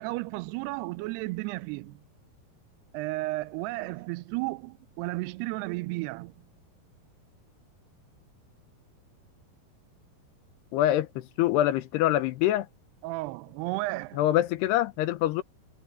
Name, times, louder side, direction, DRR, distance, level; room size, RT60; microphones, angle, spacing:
voice 1, 0.0-2.0 2.9-6.3 13.0-14.2, right 21 dB, 85° right, 2.6 m, -33 dB
voice 2, 10.7-12.7 14.1-15.4, left 13 dB, 80° left, 3.0 m, -25 dB
omnidirectional pair, 4.7 m